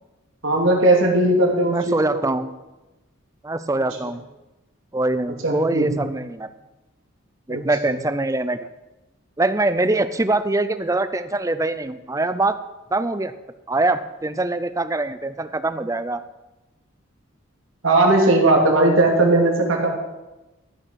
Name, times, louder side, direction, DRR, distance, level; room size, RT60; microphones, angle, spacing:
voice 1, 0.4-2.2 5.4-6.0 7.5-8.0 17.8-19.9, right 2 dB, 75° right, 0 dB, 2.7 m, -18 dB
voice 2, 1.7-2.5 3.4-4.2 4.9-6.5 7.5-8.6 9.4-12.6 12.9-13.3 13.7-16.2, right 2 dB, 15° right, 12 dB, 0.5 m, -23 dB
15.0 x 6.3 x 6.3 m, 1.0 s
head